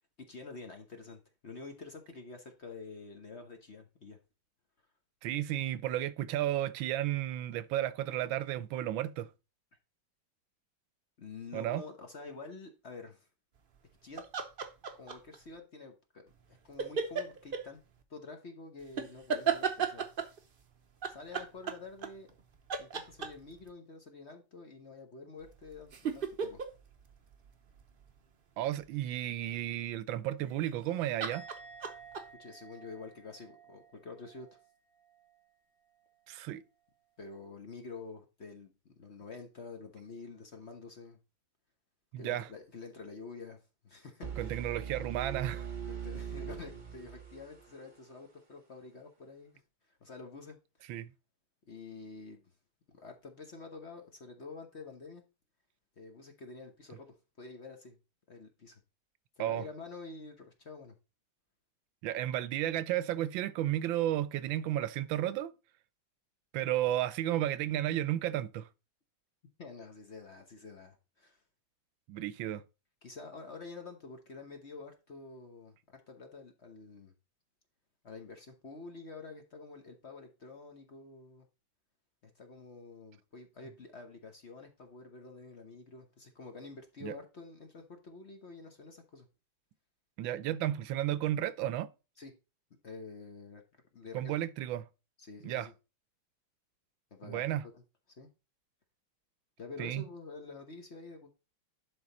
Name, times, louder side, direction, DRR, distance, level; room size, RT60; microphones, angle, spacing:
voice 1, 0.2-4.2 11.2-13.3 14.0-14.2 15.0-17.8 18.1-20.0 21.1-22.3 22.8-26.6 32.4-34.6 37.2-41.2 42.2-44.7 45.9-50.6 50.8-50.9 51.7-52.4 52.9-55.2 56.0-58.0 58.3-58.8 59.4-60.9 69.6-71.4 73.0-77.1 78.0-81.5 82.2-89.3 92.2-92.3 92.8-93.6 93.9-94.3 95.2-95.7 97.1-97.8 98.2-98.3 99.6-101.3, left 4 dB, 45° left, 1.1 m, -48 dB
voice 2, 5.2-9.3 11.5-11.8 28.6-31.4 36.3-36.6 42.1-42.5 44.4-45.7 50.9-51.1 59.4-59.6 62.0-65.5 66.5-68.7 72.1-72.6 87.0-87.2 90.2-91.9 94.1-94.8 95.4-95.7 97.2-97.6 99.8-100.0, right 13 dB, 80° right, 1.4 m, -33 dB
sound 1, 14.2-15.4 16.8-17.6 19.0-20.4 21.0-22.4 22.7-23.6 25.4-28.1 30.5-30.9 31.2-32.2, right 6 dB, 50° right, 0.6 m, -34 dB
Musical instrument, 31.3-34.7 35.0-35.4, right 4 dB, 75° left, 2.8 m, -53 dB
sound 2, 44.2-48.1, right 8 dB, 30° right, 1.1 m, -41 dB
11.0 x 4.0 x 4.1 m
omnidirectional pair, 2.1 m